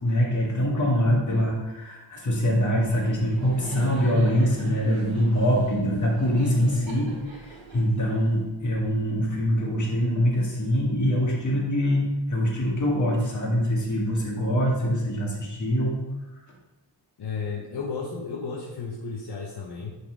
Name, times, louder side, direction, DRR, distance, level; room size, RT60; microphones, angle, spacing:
voice 1, 0.0-16.0, equal, 40° left, -3 dB, 2.2 m, -24 dB
Laughter, 2.8-8.7, right 2 dB, 85° right, 1.7 m, -42 dB
voice 2, 17.2-19.9, left 4 dB, 60° left, -3 dB, 1.1 m, -33 dB
9.8 x 4.2 x 4.6 m, 1.1 s
wide cardioid pair, 145°, 44 cm